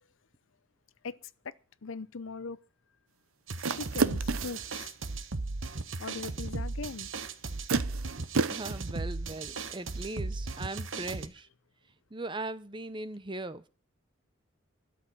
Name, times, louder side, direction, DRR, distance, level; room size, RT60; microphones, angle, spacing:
voice 1, 1.8-2.6 3.8-4.9 6.0-7.1, left 4 dB, 70° left, 0.7 m, -40 dB
sound 1, 3.5-11.3, right 3 dB, 65° right, 1.1 m, -36 dB
sound 2, 3.6-4.7 6.5-6.6 7.7-8.8, right 4 dB, 80° right, 0.8 m, -30 dB
voice 2, 8.5-11.5 12.1-13.7, right 2 dB, 20° right, 0.7 m, -39 dB
13.0 x 7.7 x 8.5 m
head